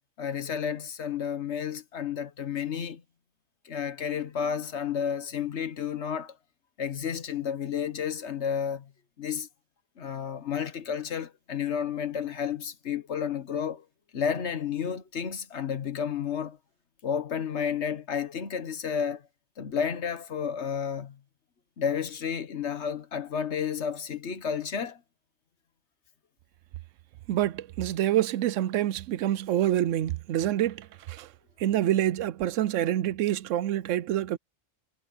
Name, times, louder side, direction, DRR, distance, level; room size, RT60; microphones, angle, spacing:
voice 1, 0.2-3.0 3.6-6.3 6.8-8.9 9.2-9.5 10.0-13.8 14.1-16.6 17.0-19.2 19.6-21.2 21.8-25.0, left 7 dB, 65° left, 1.4 m, -31 dB
voice 2, 27.3-31.3 31.6-34.4, right 12 dB, 85° right, 1.0 m, -27 dB
omnidirectional pair, 1.3 m